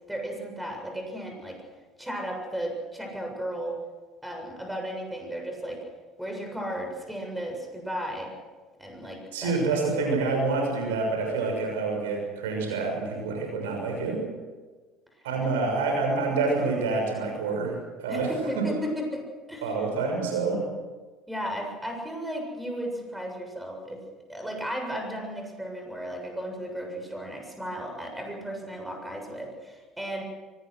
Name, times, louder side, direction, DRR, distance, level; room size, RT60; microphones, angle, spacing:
voice 1, 0.1-1.6 2.0-3.8 4.2-5.8 6.2-8.3 8.8-9.8 18.1-19.9 21.3-24.0 24.3-30.2, equal, 5° right, 2 dB, 7.5 m, -35 dB
voice 2, 9.3-14.3 15.2-17.7 18.0-18.3 18.6-18.7 19.6-20.6, right 3 dB, 80° right, 2 dB, 6.5 m, -27 dB
24.0 x 19.5 x 6.5 m, 1.3 s
hypercardioid pair, 65°, 0 cm